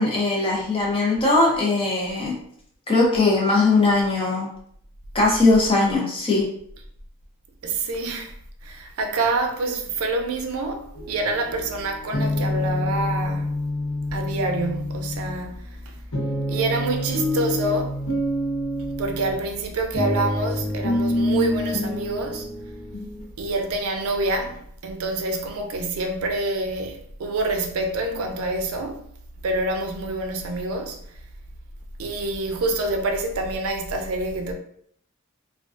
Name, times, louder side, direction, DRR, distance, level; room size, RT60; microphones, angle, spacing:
voice 1, 0.0-2.3 2.9-4.5 5.1-6.5, left 3 dB, 25° left, 0.6 m, -20 dB
voice 2, 7.6-8.3 8.6-13.5 14.1-16.0 16.5-18.0 19.0-22.5 23.4-29.0 29.4-31.0 32.0-34.5, right 2 dB, 85° right, 0.4 m, -27 dB
sound 1, 10.9-23.2, left 1 dB, 85° left, 0.9 m, -27 dB
2.3 x 2.2 x 2.4 m
head